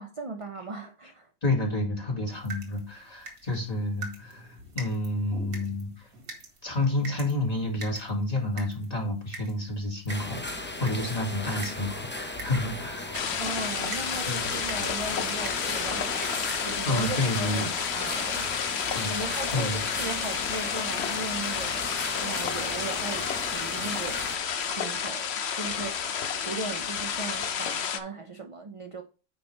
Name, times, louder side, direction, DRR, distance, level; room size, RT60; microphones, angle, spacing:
voice 1, 0.0-1.3 13.4-17.6 17.9-18.5 19.1-21.8 22.2-24.3 24.6-29.0, right 3 dB, 40° right, 0.5 m, -38 dB
voice 2, 1.4-6.1 6.6-13.3 14.3-14.5 16.9-17.7 18.9-19.1 19.5-19.8, left 2 dB, 25° left, 2.1 m, -30 dB
sound 1, 2.3-17.7, right 3 dB, 80° right, 2.2 m, -46 dB
sound 2, 10.1-24.4, left 1 dB, 10° left, 0.6 m, -36 dB
sound 3, 13.1-28.0, left 7 dB, 55° left, 0.9 m, -31 dB
9.1 x 5.5 x 3.3 m
omnidirectional pair, 1.5 m